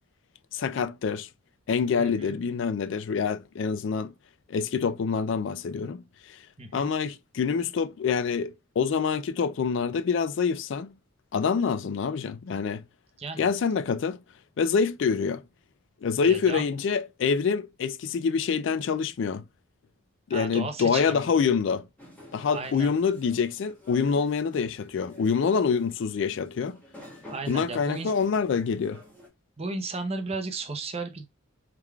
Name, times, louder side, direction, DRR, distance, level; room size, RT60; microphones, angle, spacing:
voice 1, 0.5-1.3 1.7-4.1 4.5-6.4 6.7-10.9 11.3-12.8 13.4-14.2 14.6-15.4 16.0-19.4 20.3-21.9 22.3-26.8 27.5-29.0, left 6 dB, 60° left, 0.3 m, -26 dB
voice 2, 2.0-2.4 6.6-6.9 13.2-13.5 16.3-16.6 20.3-21.3 22.5-23.0 27.3-28.1 29.6-31.2, right 3 dB, 30° right, 0.7 m, -34 dB
sound 1, 22.0-29.3, left 1 dB, 10° left, 1.4 m, -51 dB
4.7 x 3.7 x 2.2 m
head